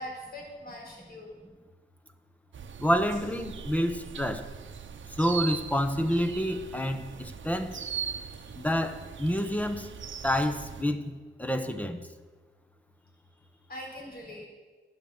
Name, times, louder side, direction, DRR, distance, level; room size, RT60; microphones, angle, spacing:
voice 1, 0.0-1.4 8.3-8.5 13.7-14.5, equal, 50° left, -1 dB, 4.4 m, -42 dB
sound 1, 2.5-10.8, right 7 dB, 70° right, 0.8 m, -40 dB
voice 2, 2.8-4.4 5.2-7.7 8.6-9.9 10.2-11.0 11.4-12.0, equal, 5° left, 9 dB, 0.9 m, -28 dB
12.5 x 9.6 x 7.1 m, 1.4 s
wide cardioid pair, 145°, 20 cm